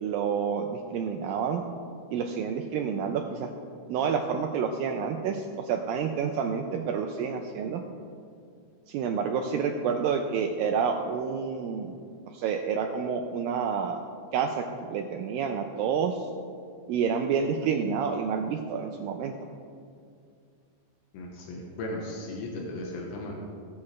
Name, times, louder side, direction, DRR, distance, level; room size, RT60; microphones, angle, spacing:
voice 1, 0.0-1.7 2.1-3.5 3.9-7.8 8.9-11.9 12.3-14.0 14.3-16.3 16.9-19.3, right 6 dB, 85° right, 4 dB, 2.0 m, -29 dB
voice 2, 21.1-23.3, left 1 dB, 90° left, -1 dB, 3.2 m, -36 dB
18.5 x 7.1 x 3.2 m, 2.3 s
omnidirectional pair, 4.7 m